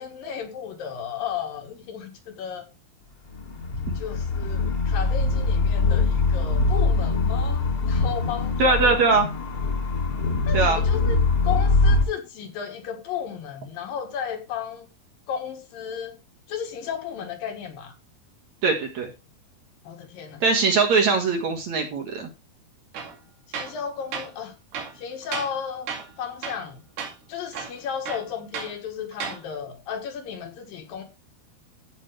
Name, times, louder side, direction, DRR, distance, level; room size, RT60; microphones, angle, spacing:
voice 1, 0.0-2.7 3.9-9.0 10.5-11.2 11.4-14.9 15.3-16.2 16.5-17.9 19.8-20.4 23.5-24.6 24.9-25.9 26.2-26.8 27.3-31.0, left 8 dB, 70° left, 3.0 m, -34 dB
sound 1, 3.3-12.0, left 3 dB, 30° left, 2.0 m, -23 dB
voice 2, 8.6-9.3 10.5-10.8 18.6-19.1 20.4-22.3, right 4 dB, 55° right, 2.5 m, -21 dB
Tools, 22.9-23.2 23.5-23.8 24.1-24.3 24.7-25.6 25.9-26.1 26.4-26.7 27.0-27.1 27.5-28.7 29.1-29.4, right 6 dB, 75° right, 4.2 m, -34 dB
15.0 x 6.1 x 3.3 m
omnidirectional pair, 4.6 m